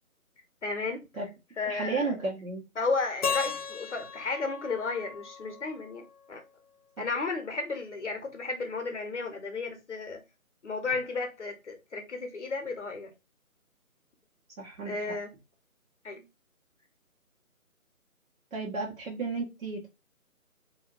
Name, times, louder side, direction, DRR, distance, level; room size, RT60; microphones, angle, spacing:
voice 1, 0.6-1.2 1.6-2.2 2.8-6.4 7.0-10.2 10.6-13.1 14.8-15.3 16.0-16.2, left 4 dB, 55° left, 0.8 m, -33 dB
voice 2, 1.6-2.6 14.6-15.0 18.5-19.9, right 3 dB, 65° right, 1.1 m, -33 dB
Keyboard (musical), 3.2-6.2, left 6 dB, 90° left, 0.6 m, -36 dB
2.7 x 2.2 x 2.4 m
figure-of-eight pair, 155°, 43 cm